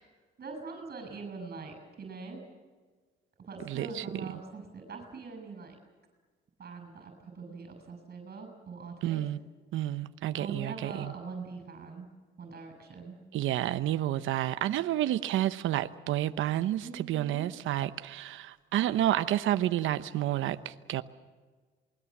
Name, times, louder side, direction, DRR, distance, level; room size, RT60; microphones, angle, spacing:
voice 1, 0.4-2.4 3.5-5.8 6.6-9.2 10.4-12.1 12.4-13.2 16.8-17.5, right 4 dB, 50° right, 5 dB, 6.4 m, -43 dB
voice 2, 3.7-4.0 9.0-9.4 9.7-11.1 13.3-21.0, right 13 dB, 85° right, 11 dB, 0.9 m, -30 dB
28.0 x 21.0 x 7.4 m, 1.4 s
cardioid pair, 90°, 20 cm